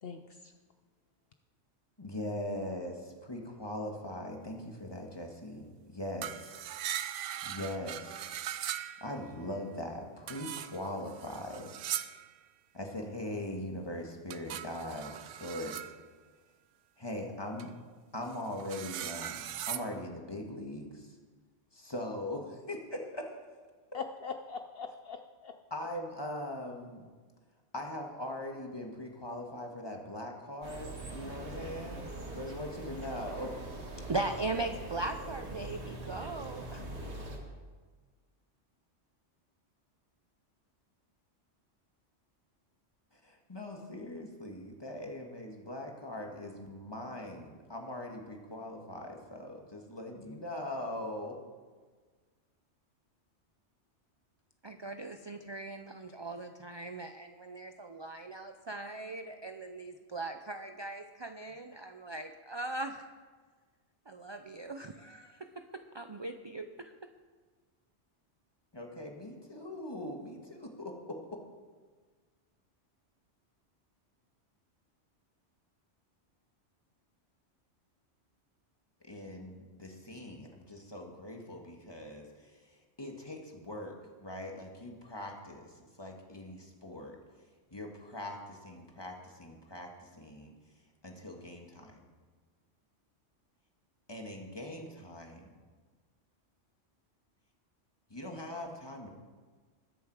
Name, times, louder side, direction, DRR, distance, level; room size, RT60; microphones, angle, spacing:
voice 1, 0.0-0.5 23.9-25.5, left 5 dB, 60° left, 6 dB, 0.8 m, -41 dB
voice 2, 2.0-6.6 7.4-8.4 9.0-11.7 12.7-15.9 17.0-17.7 18.1-21.2 21.7-23.3 25.7-27.1 27.7-33.5 43.1-51.4 68.7-70.9 79.0-82.6 83.0-83.9 84.2-87.2 87.7-90.5 91.0-92.0 94.1-95.5 98.1-99.1, left 1 dB, 20° left, 1 dB, 1.7 m, -41 dB
sound 1, 6.2-9.3 10.3-12.3 14.3-15.9 17.6-17.7 18.2-19.9, right 11 dB, 80° right, 0.9 m, -39 dB
sound 2, 30.6-37.4, right 2 dB, 65° right, 2.1 m, -42 dB
voice 3, 34.1-37.0 54.6-63.1 64.1-66.9, right 2 dB, 40° right, 7 dB, 0.4 m, -39 dB
21.0 x 7.1 x 4.8 m, 1.4 s
omnidirectional pair, 1.2 m